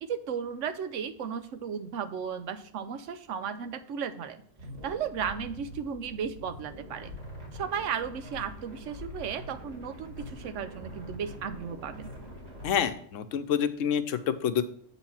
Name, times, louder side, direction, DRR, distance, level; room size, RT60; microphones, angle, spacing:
voice 1, 0.0-4.4 4.8-7.2 7.5-12.1, right 7 dB, 80° right, 11 dB, 1.0 m, -35 dB
sound 1, 4.6-12.9, left 1 dB, 60° right, 2.3 m, -44 dB
voice 2, 12.6-14.6, left 8 dB, 85° left, 11 dB, 1.1 m, -27 dB
7.8 x 4.2 x 5.8 m, 0.63 s
omnidirectional pair, 1.3 m